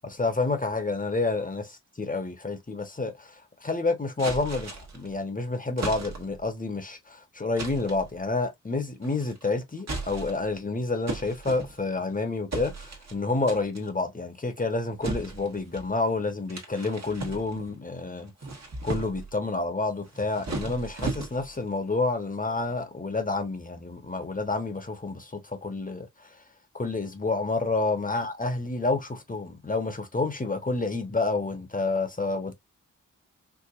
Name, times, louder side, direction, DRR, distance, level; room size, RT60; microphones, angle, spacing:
voice 1, 0.1-3.3 3.6-18.3 18.8-26.1 26.7-32.5, left 3 dB, 25° left, 1.1 m, -29 dB
sound 1, 4.2-5.1 5.8-6.4 7.6-8.1 9.0-9.4 9.8-10.5 11.1-12.0 12.5-13.2 13.5-13.9 15.0-15.9 16.5-17.8 18.2-19.3 20.0-21.6, right 3 dB, 55° right, 1.3 m, -36 dB
4.9 x 2.4 x 2.5 m
wide cardioid pair, 65°, 31 cm